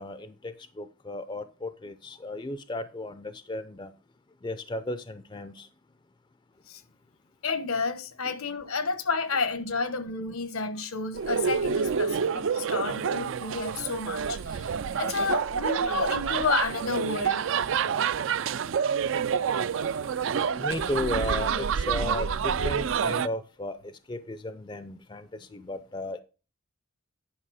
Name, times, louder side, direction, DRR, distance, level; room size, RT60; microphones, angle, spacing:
voice 1, 0.0-3.9 4.4-5.7 8.3-8.4 20.6-26.2, left 2 dB, 20° left, 0.4 m, -35 dB
voice 2, 7.4-14.7 15.0-17.5, left 4 dB, 75° left, 1.1 m, -30 dB
sound 1, 11.1-23.3, right 7 dB, 60° right, 0.4 m, -28 dB
10.0 x 5.5 x 4.8 m
head